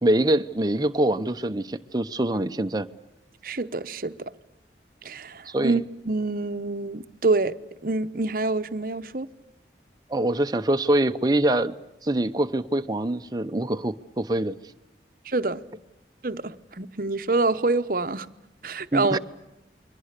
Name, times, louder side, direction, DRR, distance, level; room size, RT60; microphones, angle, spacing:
voice 1, 0.0-2.9 5.5-5.8 10.1-11.7 12.0-14.6 18.9-19.2, right 1 dB, 20° right, 0.8 m, -24 dB
voice 2, 3.4-4.1 5.0-7.6 7.8-9.3 15.3-15.6 16.2-18.3 18.6-19.2, right 3 dB, 50° right, 0.9 m, -26 dB
29.0 x 23.0 x 6.7 m
head